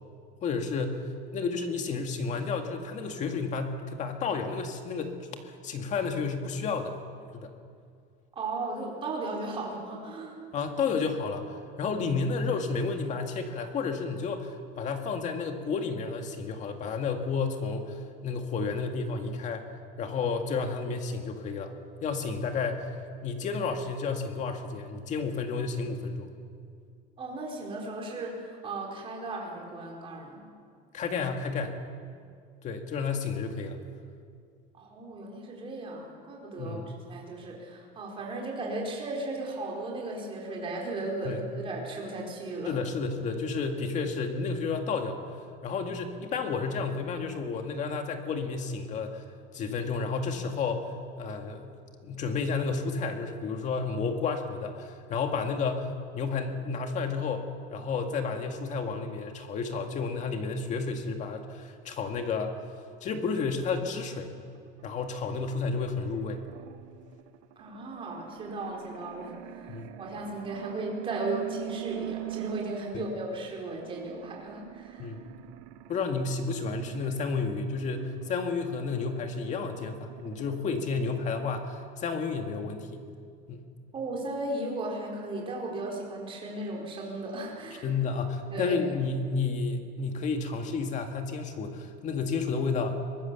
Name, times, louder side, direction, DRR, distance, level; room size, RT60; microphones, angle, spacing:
voice 1, 0.4-5.2 5.6-6.9 7.3-7.5 10.5-11.5 11.8-19.6 20.0-21.7 22.0-22.9 23.2-26.3 30.9-31.8 32.6-33.8 36.6-36.9 41.2-41.4 42.7-45.2 45.6-49.2 49.5-51.7 52.0-57.4 57.7-62.5 63.0-64.4 64.8-66.4 69.7-69.9 72.9-73.0 75.0-75.3 75.9-83.0 83.5-83.7 87.8-93.0, left 4 dB, 35° left, 5 dB, 2.1 m, -31 dB
voice 2, 8.3-10.4 27.2-30.5 34.7-36.8 37.1-42.8 67.6-75.1 83.9-87.9 88.5-88.8, right 2 dB, 25° right, -1 dB, 4.5 m, -36 dB
sound 1, 63.6-73.3 73.8-81.6, right 16 dB, 75° right, 1.0 m, -44 dB
23.5 x 19.5 x 7.1 m, 2.2 s
cardioid pair, 170°, 21 cm